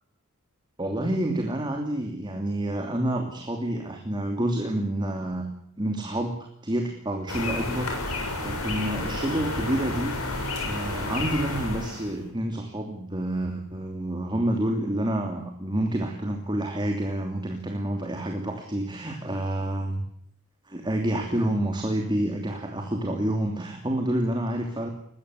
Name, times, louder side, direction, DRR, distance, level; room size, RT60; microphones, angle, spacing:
voice 1, 0.8-5.5 5.8-20.0 20.7-24.9, right 1 dB, 20° right, 3 dB, 2.9 m, -28 dB
sound 1, 7.3-12.2, left 2 dB, 80° left, 7.4 m, -31 dB
21.5 x 16.0 x 9.8 m, 0.68 s
head